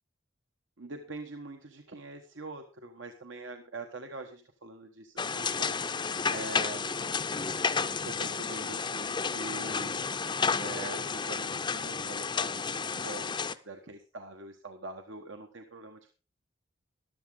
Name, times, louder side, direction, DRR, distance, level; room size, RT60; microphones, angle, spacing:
voice 1, 0.8-6.9 7.9-16.1, right 2 dB, 75° right, 5 dB, 1.3 m, -44 dB
sound 1, 5.2-13.5, left 5 dB, 25° left, 0.6 m, -32 dB
14.0 x 11.5 x 3.8 m, 0.34 s
head